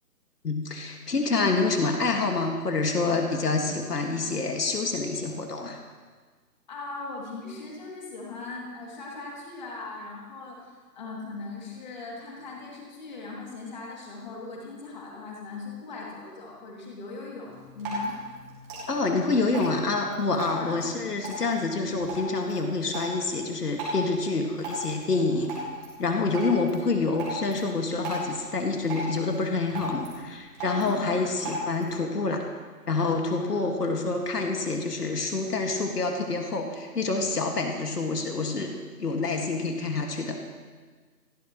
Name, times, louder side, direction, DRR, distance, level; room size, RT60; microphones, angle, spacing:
voice 1, 0.4-5.8 18.9-25.5 26.0-32.4 32.9-38.7 39.0-40.4, left 3 dB, 75° left, 3 dB, 2.1 m, -27 dB
voice 2, 6.7-18.2 20.6-20.8 30.7-31.1 33.4-33.6, left 3 dB, 30° left, -2 dB, 2.8 m, -39 dB
Drip, 17.4-31.9, equal, 10° right, 1.8 m, -38 dB
28.0 x 11.0 x 3.1 m, 1.5 s
hypercardioid pair, 170°, 48 cm